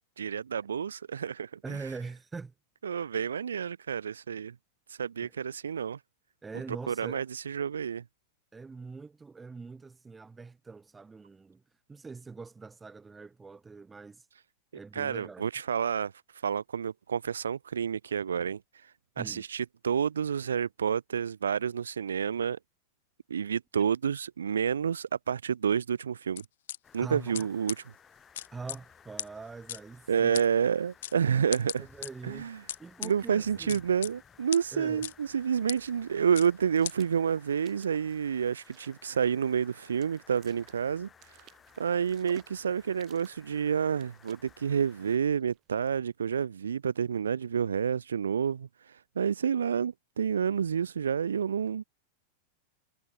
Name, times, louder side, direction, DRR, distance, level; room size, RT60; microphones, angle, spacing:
voice 1, 0.2-1.8 2.8-4.5 4.9-6.0 6.9-8.0 14.9-16.1 16.4-22.6 23.3-26.4 26.9-27.8 30.1-31.8 32.2-32.6 33.0-41.1 41.8-51.8, right 7 dB, 70° right, 0.4 m, -29 dB
voice 2, 1.6-2.5 5.2-5.3 6.4-7.2 8.5-11.6 11.9-14.3 14.7-15.4 19.2-19.4 27.0-27.5 28.5-30.4 31.8-32.5 32.8-33.8 34.7-35.1, right 4 dB, 15° right, 0.6 m, -43 dB
sound 1, 26.4-26.8 27.3-27.4 27.7-27.8 28.3-28.8 29.2-29.3 29.7-29.8 30.3-30.4 31.0-31.1 31.5-32.1 32.7-33.1 33.7-34.1 34.5-34.6 35.0-35.1 35.7-35.8 36.3-36.5 36.8-36.9, left 12 dB, 60° left, 0.4 m, -36 dB
sound 2, 26.8-45.2, left 7 dB, 20° left, 3.0 m, -58 dB
sound 3, 35.1-46.0, right 15 dB, 35° right, 3.5 m, -60 dB
figure-of-eight pair, 90°, 0 cm